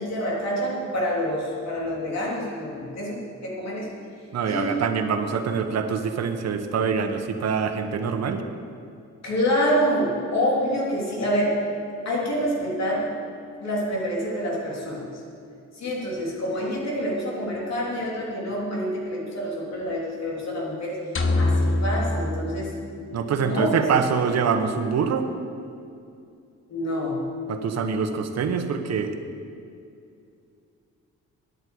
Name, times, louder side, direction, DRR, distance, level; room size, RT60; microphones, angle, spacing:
voice 1, 0.0-3.9 4.4-4.8 9.2-11.6 12.0-13.1 13.6-15.1 15.8-21.0 21.3-22.7 23.4-23.9 26.7-27.2, equal, 60° left, -4 dB, 3.4 m, -27 dB
voice 2, 4.3-8.4 23.1-25.3 27.5-29.1, right 6 dB, 60° right, 7 dB, 1.2 m, -25 dB
sound 1, 21.2-23.4, left 2 dB, 40° left, 1.2 m, -24 dB
9.8 x 9.0 x 8.6 m, 2.5 s
cardioid pair, 90°, 30 cm